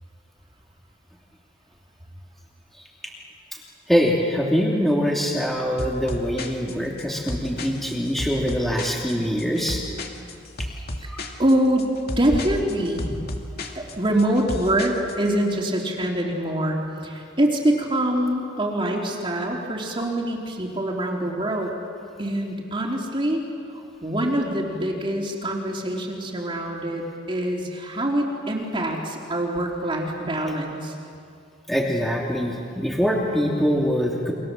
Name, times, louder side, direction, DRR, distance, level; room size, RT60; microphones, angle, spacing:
voice 1, 3.9-9.8 11.1-11.2 31.7-34.3, equal, ahead, -2 dB, 2.7 m, -23 dB
sound 1, 5.8-15.3, left 1 dB, 55° left, 2.5 m, -34 dB
voice 2, 11.4-11.9 12.2-13.1 13.8-21.7 22.2-23.4 23.7-30.9, right 1 dB, 25° right, -1 dB, 3.5 m, -24 dB
30.0 x 24.5 x 7.6 m, 2.4 s
head